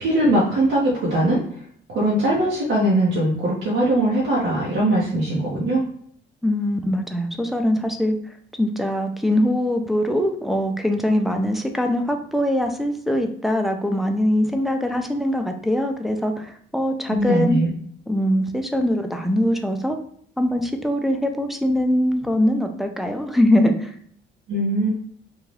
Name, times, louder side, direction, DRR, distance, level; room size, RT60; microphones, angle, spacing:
voice 1, 0.0-1.4 1.9-5.9 17.1-17.7 24.5-24.9, right 1 dB, 75° right, -6 dB, 0.9 m, -20 dB
voice 2, 6.4-17.6 18.1-20.0 20.4-23.9, left 1 dB, ahead, 4 dB, 0.4 m, -22 dB
2.7 x 2.3 x 3.1 m, 0.63 s
cardioid pair, 90°, 20 cm